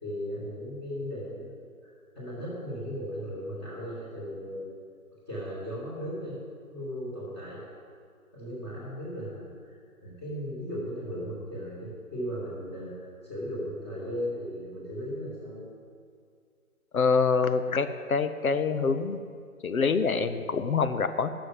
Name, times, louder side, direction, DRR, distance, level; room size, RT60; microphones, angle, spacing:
voice 1, 0.0-4.8 5.3-6.4 6.7-7.6 8.3-15.7, equal, 20° left, -10 dB, 2.8 m, -37 dB
voice 2, 16.9-19.2 19.6-21.3, left 5 dB, 70° left, 10 dB, 0.9 m, -25 dB
12.5 x 6.4 x 7.7 m, 2.2 s
hypercardioid pair, 170°, 44 cm